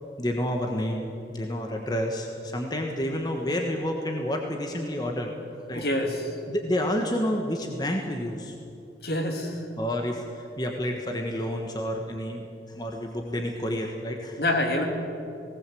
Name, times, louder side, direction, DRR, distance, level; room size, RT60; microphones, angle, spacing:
voice 1, 0.2-5.3 5.7-5.8 6.5-8.5 9.8-12.4 12.7-14.4, equal, 20° left, 2 dB, 1.5 m, -29 dB
voice 2, 5.7-6.3 9.0-9.6 14.4-14.9, left 1 dB, 60° left, 3 dB, 2.6 m, -26 dB
19.0 x 18.0 x 7.8 m, 2.6 s
head